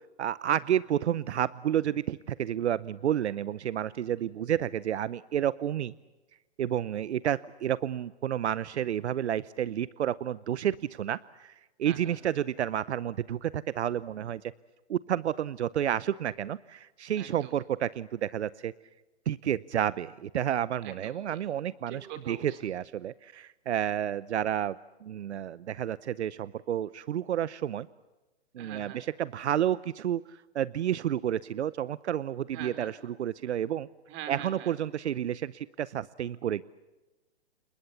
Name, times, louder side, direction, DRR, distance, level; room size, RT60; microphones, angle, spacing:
voice 1, 0.2-5.9 6.6-11.5 11.8-14.4 14.9-18.7 19.3-24.8 25.0-27.9 28.5-30.2 30.5-33.9 34.3-36.6, right 10 dB, 80° right, 19 dB, 0.8 m, -30 dB
voice 2, 11.8-12.2 17.1-17.5 20.8-21.4 21.9-22.6 28.6-29.0 32.5-32.9 34.1-34.7, right 9 dB, 35° right, 8 dB, 4.6 m, -43 dB
28.5 x 22.0 x 7.1 m, 1.1 s
hypercardioid pair, 135°, 33 cm